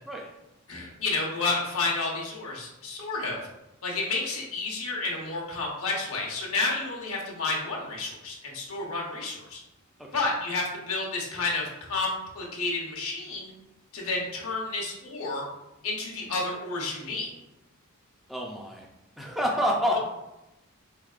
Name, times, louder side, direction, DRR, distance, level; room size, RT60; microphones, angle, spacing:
voice 1, 0.7-3.4 3.8-9.6 10.1-13.5 13.9-15.4 15.8-17.3 19.9-20.0, left 3 dB, 75° left, -2 dB, 0.9 m, -30 dB
voice 2, 10.0-10.3 18.3-18.9 19.2-20.0, equal, ahead, -2 dB, 0.3 m, -28 dB
3.5 x 3.4 x 2.4 m, 0.94 s
head